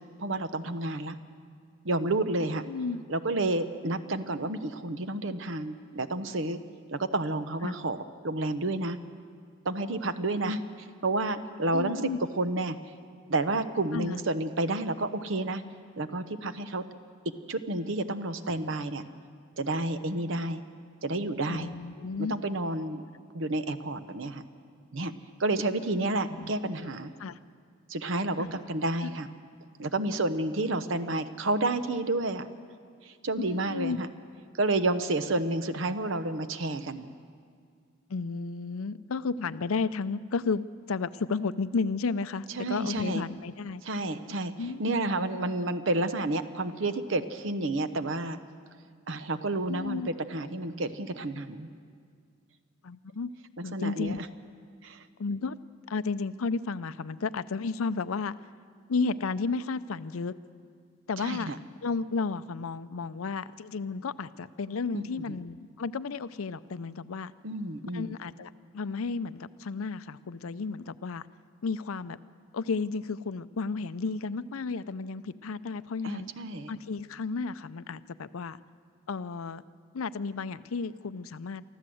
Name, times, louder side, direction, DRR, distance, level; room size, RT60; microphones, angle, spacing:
voice 1, 0.2-1.2 1.8-2.6 3.1-6.6 6.9-8.0 8.2-9.0 9.6-10.6 11.0-12.0 12.4-12.8 13.3-15.6 16.0-16.8 17.5-19.0 19.6-20.6 21.0-21.7 22.2-23.0 23.3-24.4 24.9-25.1 25.4-27.1 27.9-29.3 29.8-32.5 33.1-34.1 34.6-37.1 42.6-43.2 43.8-44.5 44.8-48.4 49.1-51.7 53.6-54.3 54.8-55.0 61.2-61.6 64.9-65.3 67.4-68.1 76.0-76.7, right 2 dB, 65° right, 11 dB, 0.9 m, -30 dB
voice 2, 2.7-3.0 7.6-7.7 11.7-12.2 13.9-14.2 21.5-22.3 26.3-26.5 26.8-26.9 27.2-27.4 28.4-28.5 29.0-29.1 33.4-34.0 38.1-43.8 44.6-45.0 49.7-50.1 52.8-53.3 53.6-54.2 55.2-55.6 55.9-58.3 58.9-60.3 61.1-61.5 61.8-67.3 67.9-71.2 71.6-72.2 72.5-76.3 76.7-78.6 79.1-79.6 79.9-81.6, left 4 dB, 85° left, 15 dB, 0.5 m, -33 dB
24.0 x 14.5 x 7.8 m, 2.1 s
head